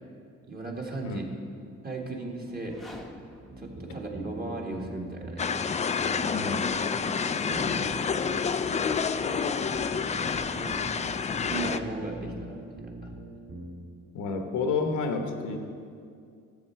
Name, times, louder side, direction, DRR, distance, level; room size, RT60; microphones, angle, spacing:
voice 1, 0.5-1.2 1.8-2.8 3.6-5.5 7.3-8.0 8.3-8.7 10.6-10.8 11.5-13.1, right 2 dB, 30° right, 0 dB, 1.7 m, -37 dB
sound 1, 2.5-4.6, left 1 dB, ahead, 0.9 m, -49 dB
sound 2, 3.5-13.7, right 1 dB, 50° right, 2.2 m, -43 dB
sound 3, 5.4-11.8, left 6 dB, 25° left, 0.3 m, -28 dB
voice 2, 6.3-6.7 14.1-15.6, left 4 dB, 80° left, 4 dB, 1.1 m, -30 dB
12.0 x 7.4 x 4.5 m, 2.3 s
cardioid pair, 90°, 30 cm